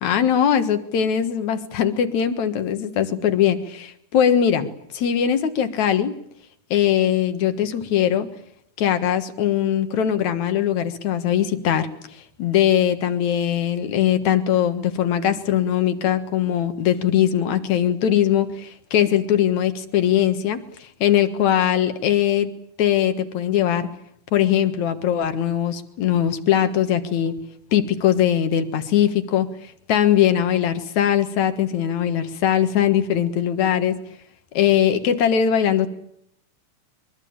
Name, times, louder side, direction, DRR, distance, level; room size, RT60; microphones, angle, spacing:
voice 1, 0.0-6.1 6.7-8.3 8.8-11.9 12.4-20.6 21.0-22.5 22.8-23.9 24.3-27.4 27.7-29.5 29.9-34.0 34.5-35.9, left 10 dB, 70° left, 10 dB, 2.9 m, -20 dB
23.5 x 23.0 x 8.8 m, 0.72 s
omnidirectional pair, 3.5 m